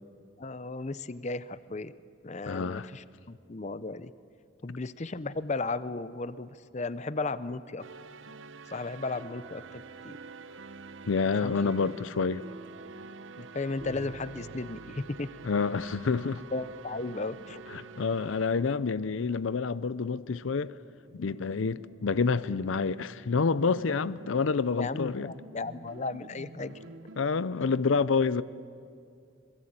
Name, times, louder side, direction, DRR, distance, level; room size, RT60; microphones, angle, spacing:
voice 1, 0.4-1.9 2.2-4.1 4.6-7.8 8.7-10.2 11.4-11.7 13.4-15.3 16.5-17.6 24.7-26.7, left 3 dB, 35° left, 0.6 m, -35 dB
voice 2, 2.5-2.9 11.1-12.4 15.4-16.4 17.7-20.8 21.1-25.3 27.2-28.4, left 4 dB, 75° left, 0.6 m, -28 dB
sound 1, 7.8-19.4 20.8-27.5, right 3 dB, 75° right, 0.9 m, -48 dB
26.5 x 22.0 x 8.8 m
head